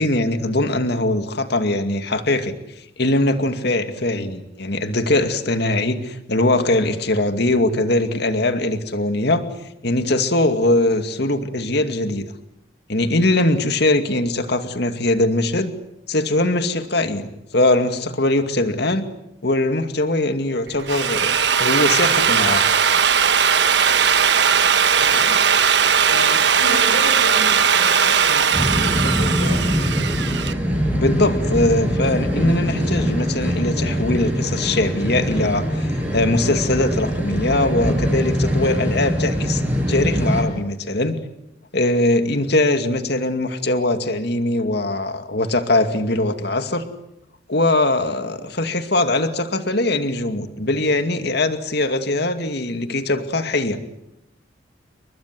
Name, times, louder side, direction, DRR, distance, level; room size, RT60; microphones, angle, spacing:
voice 1, 0.0-2.5 3.0-9.4 9.8-12.3 12.9-15.7 16.1-19.1 19.4-21.3 21.6-22.6 30.9-39.6 39.9-41.2 41.7-46.9 47.5-53.8, left 2 dB, 55° left, 8 dB, 2.4 m, -21 dB
Drill, 20.7-30.5, right 7 dB, 60° right, 1.3 m, -18 dB
voice 2, 25.0-25.4 26.1-30.1, left 1 dB, 85° left, 5 dB, 8.0 m, -31 dB
sound 1, 28.5-40.4, equal, 10° right, 6.9 m, -22 dB
30.0 x 23.5 x 7.8 m, 0.83 s
head